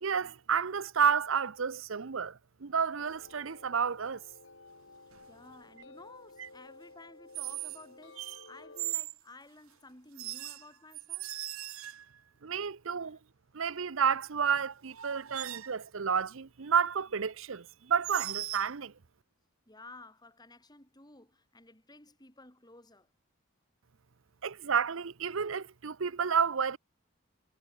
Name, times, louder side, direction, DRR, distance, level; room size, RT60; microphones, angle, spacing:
voice 1, 0.0-4.2 12.4-13.2 13.5-18.9 24.4-26.8, right 6 dB, 70° right, 0.7 m, -30 dB
sound 1, 3.0-8.9, left 2 dB, 65° left, 3.2 m, -54 dB
sound 2, 3.0-3.3 5.1-5.4 7.3-7.8 8.2-9.2 10.2-12.2 14.4-14.5 14.9-15.8 18.0-18.7, right 15 dB, 85° right, 1.2 m, -39 dB
voice 2, 5.3-11.3 12.3-12.4 13.0-13.2 19.7-23.1, left 2 dB, 20° left, 4.0 m, -54 dB
head